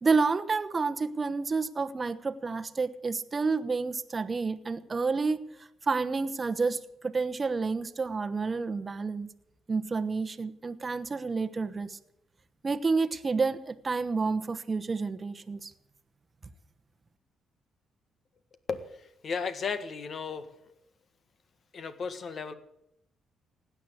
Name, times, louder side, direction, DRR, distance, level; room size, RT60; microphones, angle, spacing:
voice 1, 0.0-9.3 9.7-12.0 12.6-15.7, right 4 dB, 30° right, 10 dB, 1.0 m, -29 dB
voice 2, 18.7-20.5 21.7-22.5, left 5 dB, 50° left, 11 dB, 1.6 m, -35 dB
16.5 x 9.9 x 8.1 m, 0.82 s
cardioid pair, 90°, 0 cm